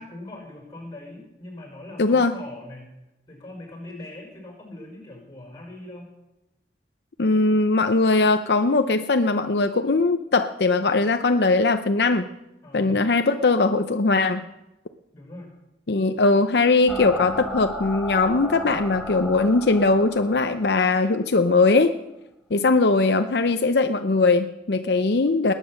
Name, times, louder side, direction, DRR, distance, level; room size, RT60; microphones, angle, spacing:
voice 1, 0.0-2.9 3.3-6.1 12.6-13.0 15.1-15.5, left 1 dB, 25° left, 1 dB, 5.5 m, -41 dB
voice 2, 2.0-2.4 7.2-12.3 12.7-14.4 15.9-21.9 22.5-25.5, left 3 dB, 75° left, 8 dB, 0.6 m, -20 dB
sound 1, 16.9-21.5, left 1 dB, ahead, 1.1 m, -35 dB
20.0 x 9.2 x 6.4 m, 0.93 s
head